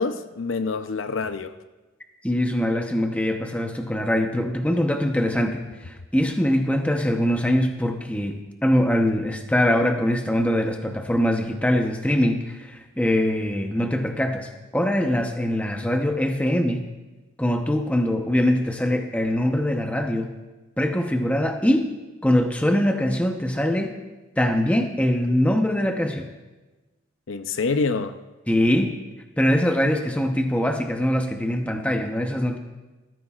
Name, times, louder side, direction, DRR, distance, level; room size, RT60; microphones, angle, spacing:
voice 1, 0.0-1.5 27.3-28.2, left 4 dB, 75° left, 0.6 m, -26 dB
voice 2, 2.2-16.8 17.4-20.3 20.8-21.9 22.2-23.9 24.4-26.3 28.5-28.9 29.4-32.6, left 1 dB, 5° left, 0.8 m, -23 dB
18.5 x 14.0 x 2.4 m
head